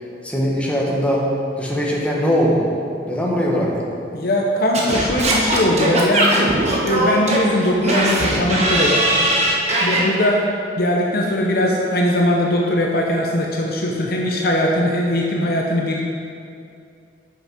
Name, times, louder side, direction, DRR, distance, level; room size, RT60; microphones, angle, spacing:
voice 1, 0.2-1.3 1.6-2.6 3.1-3.9, equal, 5° left, -3 dB, 1.2 m, -20 dB
voice 2, 4.1-9.3 9.8-10.4 10.8-16.0, left 1 dB, 60° left, -1 dB, 0.7 m, -20 dB
Singing / Scratching (performance technique), 4.7-10.1, right 1 dB, 40° right, 1.2 m, -19 dB
7.5 x 6.7 x 5.1 m, 2.5 s
head